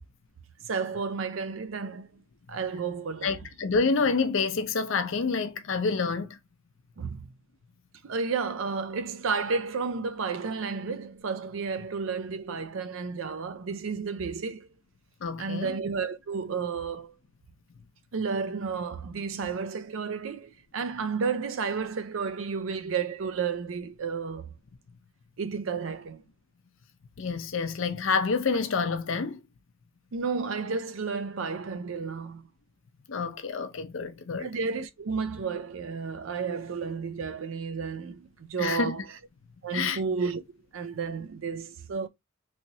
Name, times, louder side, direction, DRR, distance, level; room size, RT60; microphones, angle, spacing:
voice 1, 0.7-2.2 2.5-3.3 7.0-7.3 8.0-14.7 15.4-17.1 18.1-24.5 25.4-26.2 30.1-32.4 34.4-39.0 39.6-40.4 40.7-42.1, right 5 dB, 70° right, 0.5 m, -32 dB
voice 2, 3.2-6.4 15.2-15.8 27.2-29.4 33.1-34.5 38.6-39.0 39.7-40.0, left 4 dB, 65° left, 0.6 m, -28 dB
3.2 x 2.8 x 2.7 m
head